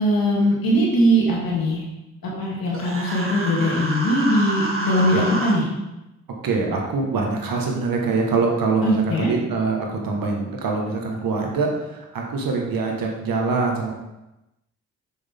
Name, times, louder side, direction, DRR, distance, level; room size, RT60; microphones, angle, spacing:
voice 1, 0.0-1.9 2.4-5.6 8.8-9.3, equal, 70° left, -3 dB, 2.5 m, -20 dB
Human voice, 2.7-5.5, right 1 dB, 35° right, 2.0 m, -28 dB
voice 2, 6.4-13.9, right 4 dB, 70° right, 0 dB, 1.7 m, -24 dB
6.8 x 6.3 x 3.7 m, 0.96 s
hypercardioid pair, 40°, 36 cm